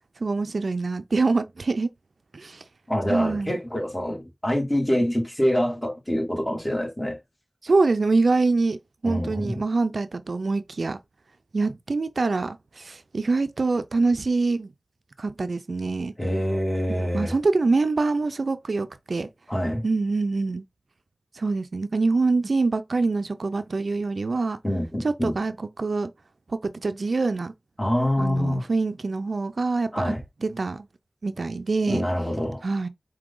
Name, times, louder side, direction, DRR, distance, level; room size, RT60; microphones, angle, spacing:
voice 1, 0.2-1.9 2.3-2.6 3.1-3.6 7.6-8.8 9.0-11.0 11.5-14.7 15.2-16.1 16.9-19.3 19.8-20.6 21.4-24.6 25.0-26.1 26.5-27.5 28.2-30.1 30.4-30.9 31.2-32.0 32.6-32.9, right 3 dB, 90° right, 0.4 m, -25 dB
voice 2, 2.9-7.2 9.0-9.6 16.2-17.3 19.5-19.8 24.6-25.3 27.8-28.6 29.9-30.2 31.9-32.6, equal, 15° left, 2.5 m, -25 dB
4.8 x 2.8 x 3.8 m
wide cardioid pair, 50°, 0 cm